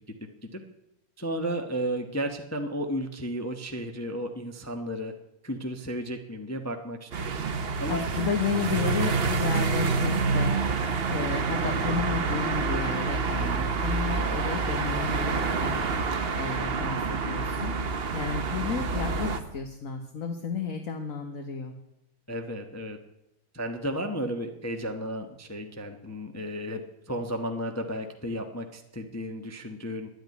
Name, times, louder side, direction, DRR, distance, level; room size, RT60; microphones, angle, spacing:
voice 1, 1.2-5.1 5.4-7.4 7.8-8.0 22.3-23.0 23.5-26.8 27.1-30.1, equal, 15° left, 4 dB, 0.6 m, -33 dB
sound 1, 7.1-19.4, right 4 dB, 45° right, 0.8 m, -27 dB
voice 2, 7.8-21.7, left 6 dB, 45° left, 4 dB, 1.4 m, -33 dB
10.5 x 9.3 x 9.5 m, 0.87 s
omnidirectional pair, 2.2 m